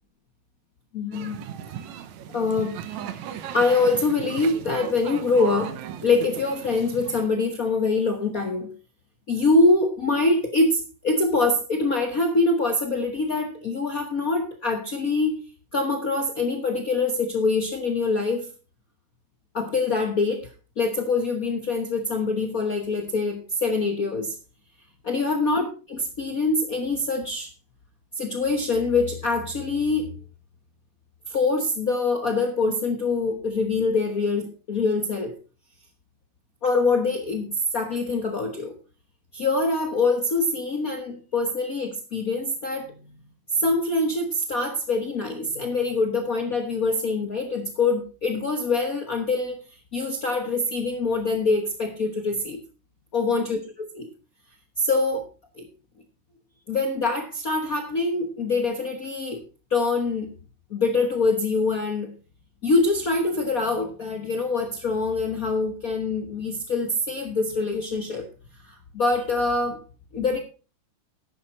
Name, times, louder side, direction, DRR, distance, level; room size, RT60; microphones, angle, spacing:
voice 1, 0.9-1.4 2.3-2.8 3.5-5.8 6.0-8.7 9.3-15.4 15.7-18.5 19.5-24.3 25.0-27.5 28.2-30.2 31.3-35.4 36.6-38.7 39.3-42.9 43.6-49.6 49.9-52.6 53.1-54.1 54.8-55.3 55.6-55.7 56.7-59.4 59.7-60.3 60.7-62.1 62.6-68.3 68.7-69.8 70.1-70.4, left 3 dB, 75° left, 4 dB, 0.8 m, -24 dB
sound 1, 1.1-7.2, right 9 dB, 70° right, 2.1 m, -36 dB
11.0 x 9.2 x 4.1 m, 0.35 s
omnidirectional pair, 3.5 m